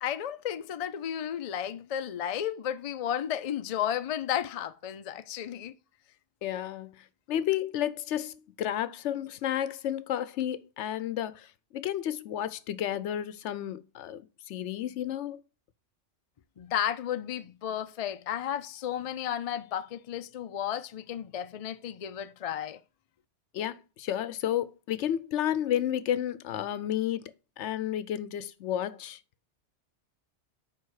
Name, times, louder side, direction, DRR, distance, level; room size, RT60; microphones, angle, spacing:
voice 1, 0.0-5.7 16.6-22.8, left 10 dB, 55° left, 0.4 m, -33 dB
voice 2, 6.4-15.4 23.5-27.3 27.6-29.2, left 11 dB, 80° left, 0.9 m, -32 dB
9.2 x 3.5 x 4.7 m
omnidirectional pair, 1.2 m